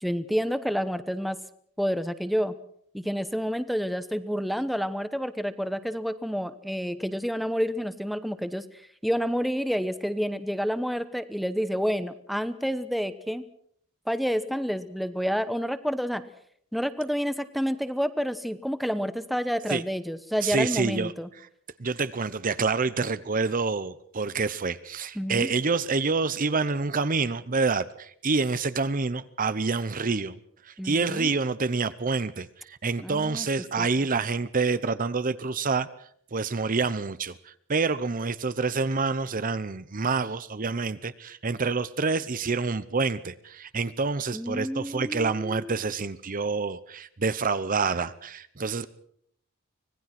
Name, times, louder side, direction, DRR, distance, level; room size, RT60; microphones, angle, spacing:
voice 1, 0.0-1.4 1.8-2.5 2.9-8.6 9.0-13.4 14.1-16.2 16.7-21.3 25.2-25.5 30.8-31.3 33.0-33.5 33.8-33.9 44.3-45.8, equal, ahead, 12 dB, 0.9 m, -29 dB
voice 2, 20.4-21.1 21.8-30.4 30.6-35.9 36.3-48.9, right 4 dB, 40° right, 14 dB, 0.8 m, -27 dB
25.5 x 18.5 x 5.9 m, 0.66 s
head